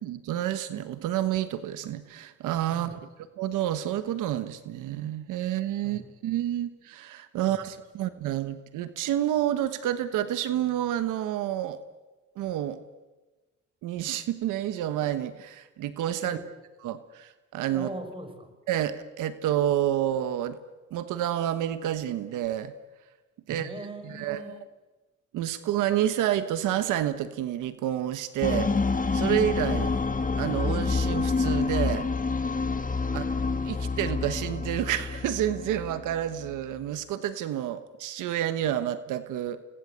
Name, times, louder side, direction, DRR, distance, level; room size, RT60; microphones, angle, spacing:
voice 1, 0.0-3.0 3.4-11.8 12.4-12.8 13.8-16.4 16.8-17.9 18.7-20.6 20.9-22.7 23.5-23.7 24.1-24.4 25.3-28.7 29.1-29.9 30.4-32.1 33.1-33.2 33.7-39.6, right 12 dB, 90° right, 11 dB, 1.3 m, -29 dB
voice 2, 2.7-3.0 5.8-6.1 7.4-7.7 16.2-16.5 17.7-18.5 23.5-24.6 29.8-30.0 33.0-33.3, right 1 dB, 15° right, 7 dB, 6.2 m, -41 dB
sound 1, 28.4-36.6, left 4 dB, 25° left, 1.9 m, -28 dB
29.5 x 21.0 x 8.2 m, 1.2 s
cardioid pair, 90°, 30 cm